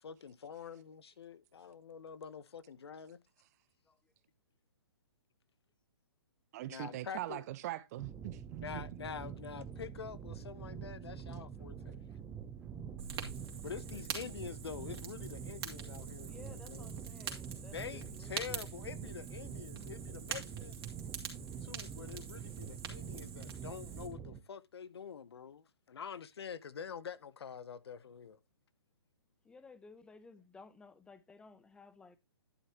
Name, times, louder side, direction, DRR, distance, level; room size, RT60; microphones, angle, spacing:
voice 1, 0.0-3.2 6.7-7.4 8.6-12.0 13.6-16.9 17.7-20.8 21.6-28.4, left 7 dB, 70° left, 0.9 m, -46 dB
voice 2, 6.5-8.9, right 15 dB, 40° right, 0.8 m, -42 dB
sound 1, 8.0-24.4, right 7 dB, 10° right, 0.9 m, -46 dB
Fire, 13.0-24.1, right 6 dB, 65° right, 3.0 m, -46 dB
voice 3, 16.2-18.8 29.4-32.2, left 4 dB, 5° left, 0.7 m, -56 dB
11.0 x 7.1 x 2.9 m
hypercardioid pair, 140°, 14 cm